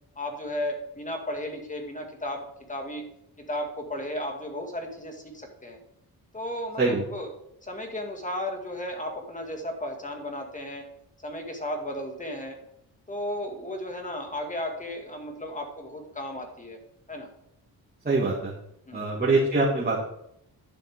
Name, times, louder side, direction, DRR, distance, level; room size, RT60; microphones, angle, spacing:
voice 1, 0.2-3.0 3.5-5.8 6.3-7.3 7.6-10.9 11.2-12.6 13.1-16.8 17.1-17.3 18.9-19.1, left 1 dB, 20° left, 3 dB, 2.2 m, -34 dB
voice 2, 18.0-18.5 18.9-20.0, right 3 dB, 25° right, -6 dB, 2.4 m, -23 dB
11.5 x 6.9 x 3.7 m, 0.77 s
cardioid pair, 85°, 39 cm